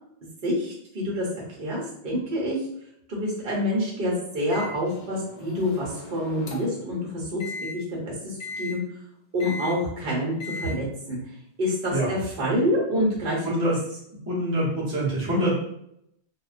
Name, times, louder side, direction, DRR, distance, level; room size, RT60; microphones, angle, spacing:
voice 1, 0.4-2.6 3.1-7.4 7.7-8.8 9.3-11.2 11.6-13.4, equal, 55° right, -3 dB, 1.0 m, -27 dB
Microwave oven, 4.5-6.8 7.4-7.7 8.4-8.7 9.4-9.8 10.4-10.7, left 3 dB, 75° left, 0.8 m, -37 dB
voice 2, 13.4-13.8 14.2-15.5, right 1 dB, 20° right, -8 dB, 0.7 m, -25 dB
2.3 x 2.1 x 2.4 m, 0.74 s
omnidirectional pair, 1.2 m